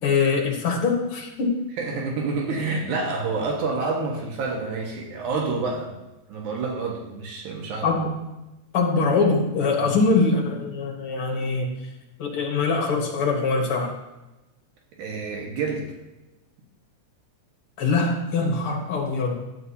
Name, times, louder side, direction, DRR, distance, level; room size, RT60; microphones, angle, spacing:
voice 1, 0.0-1.6 7.8-8.1 8.7-11.7 12.2-13.9 17.8-19.4, left 4 dB, 55° left, 0 dB, 2.0 m, -23 dB
voice 2, 1.8-5.9 6.3-8.0 9.8-10.0 15.0-15.9, right 4 dB, 85° right, -1 dB, 2.8 m, -28 dB
12.0 x 8.2 x 2.8 m, 1.0 s
omnidirectional pair, 3.3 m